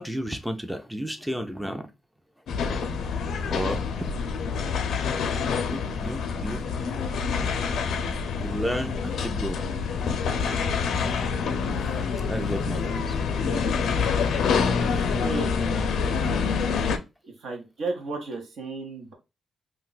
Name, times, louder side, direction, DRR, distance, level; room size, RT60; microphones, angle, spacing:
voice 1, 0.0-1.9 2.6-2.9 3.5-3.8 5.2-5.3 5.6-6.7 7.3-7.4 8.3-9.6 10.0-10.1 10.8-11.1 11.7-13.5, equal, 5° right, 0.4 m, -33 dB
sound 1, 2.5-17.0, left 5 dB, 80° left, 0.4 m, -26 dB
voice 2, 14.5-15.6 17.2-19.1, right 3 dB, 70° right, 1.0 m, -34 dB
2.4 x 2.3 x 3.8 m
wide cardioid pair, 145°, 0 cm